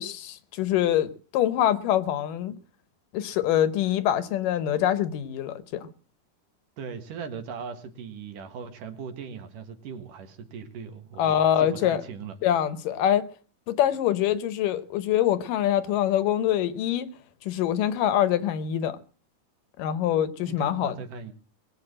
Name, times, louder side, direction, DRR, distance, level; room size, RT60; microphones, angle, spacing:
voice 1, 0.0-2.5 3.1-5.9 11.2-12.0 12.4-13.3 13.7-17.1 17.5-19.0 19.8-20.9, left 11 dB, 75° left, 2.5 m, -24 dB
voice 2, 6.8-12.4 20.4-21.3, right 6 dB, 70° right, 3.2 m, -39 dB
21.0 x 8.4 x 7.6 m
omnidirectional pair, 4.1 m